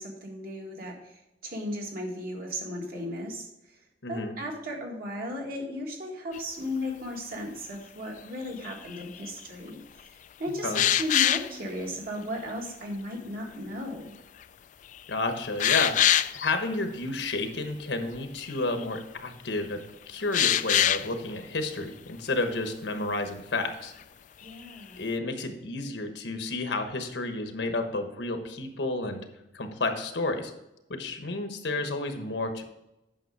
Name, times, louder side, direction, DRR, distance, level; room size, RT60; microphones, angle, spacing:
voice 1, 0.0-3.8 4.1-14.2 24.4-25.1, left 1 dB, 55° right, 0 dB, 1.9 m, -36 dB
voice 2, 4.0-4.3 10.6-10.8 15.1-15.9 16.3-23.9 25.0-29.2 29.5-30.5 30.9-32.6, left 2 dB, 80° left, 6 dB, 1.2 m, -31 dB
sound 1, 6.3-6.4 8.6-9.3 10.7-11.5 14.4-14.5 15.0-15.1 15.6-16.5 18.1-18.2 18.4-18.8 20.3-21.1 24.5-24.7, left 11 dB, 45° left, 0.3 m, -24 dB
9.1 x 6.0 x 4.7 m, 0.92 s
head